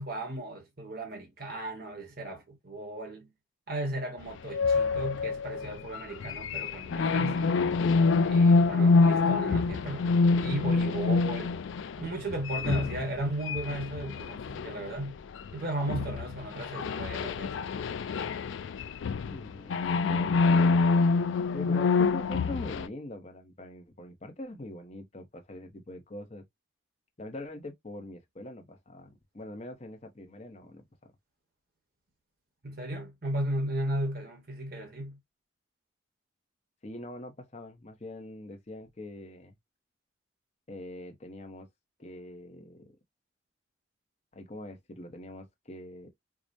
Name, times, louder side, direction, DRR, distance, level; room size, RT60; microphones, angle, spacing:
voice 1, 0.0-3.3 3.7-7.4 8.2-10.1 10.4-11.6 12.0-15.2 15.5-17.7 32.6-35.2, right 1 dB, 50° right, 1.1 m, -35 dB
sound 1, 4.5-15.5 15.9-22.9, left 4 dB, 70° left, 0.3 m, -26 dB
voice 2, 19.3-21.1 21.5-26.4 27.2-31.1 36.8-39.6 40.7-41.7 42.0-42.9 44.3-46.1, left 1 dB, 35° left, 0.8 m, -43 dB
4.7 x 2.1 x 2.5 m
head